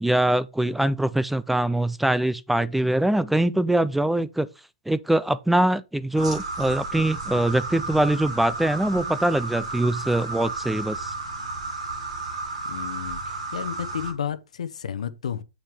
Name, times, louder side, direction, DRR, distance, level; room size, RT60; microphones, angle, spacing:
voice 1, 0.0-4.5 4.9-11.1, right 1 dB, 5° right, 0.4 m, -23 dB
sound 1, 6.2-14.1, right 3 dB, 85° right, 3.2 m, -33 dB
voice 2, 12.6-15.4, left 8 dB, 80° left, 0.8 m, -32 dB
7.4 x 6.2 x 3.5 m
hypercardioid pair, 120°, 4 cm